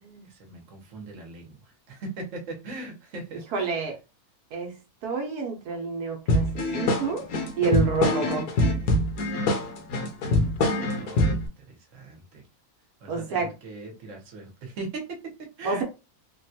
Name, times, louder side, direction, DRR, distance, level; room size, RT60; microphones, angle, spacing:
voice 1, 0.3-1.5 1.9-3.7 10.7-12.4 13.0-15.8, right 3 dB, 60° right, 1.2 m, -40 dB
voice 2, 3.5-4.0 4.5-4.8 5.0-7.2 7.6-8.5 13.1-13.5 15.6-15.8, right 4 dB, 85° right, 1.3 m, -28 dB
sound 1, 6.3-11.5, left 2 dB, 70° left, 1.2 m, -24 dB
3.4 x 2.3 x 2.7 m
omnidirectional pair, 1.6 m